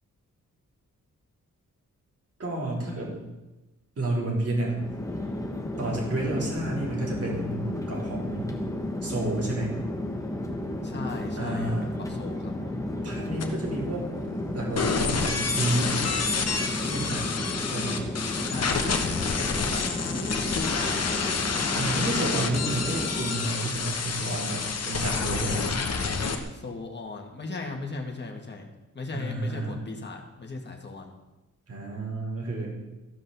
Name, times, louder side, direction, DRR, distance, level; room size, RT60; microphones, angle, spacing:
voice 1, 2.4-3.2 4.0-4.9 5.8-8.5 9.0-9.8 11.4-11.9 13.0-14.1 14.5-16.0 16.8-17.3 17.7-18.1 21.7-25.6 29.1-29.8 31.7-32.7, right 2 dB, 50° right, -3 dB, 3.6 m, -30 dB
Chatter / Fixed-wing aircraft airplane, 4.6-23.5, left 1 dB, 10° left, 1.1 m, -33 dB
voice 2, 10.8-12.7 18.5-21.1 26.5-28.7 28.9-31.1, left 3 dB, 35° left, 2 dB, 1.7 m, -37 dB
sound 1, 13.4-13.5 14.8-26.4, left 5 dB, 55° left, 1.1 m, -28 dB
14.5 x 5.4 x 6.8 m, 1.0 s
wide cardioid pair, 170°, 31 cm